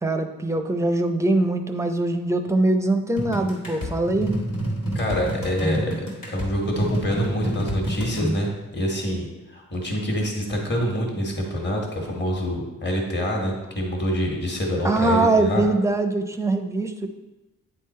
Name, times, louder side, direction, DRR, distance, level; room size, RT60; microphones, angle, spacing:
voice 1, 0.0-4.3 14.8-17.1, right 2 dB, 10° right, 6 dB, 0.5 m, -22 dB
sound 1, 3.2-8.3, equal, 90° left, 1.8 m, -28 dB
voice 2, 4.9-15.6, equal, 35° left, -1 dB, 1.5 m, -26 dB
9.2 x 3.8 x 4.2 m, 1.1 s
wide cardioid pair, 115°, 32 cm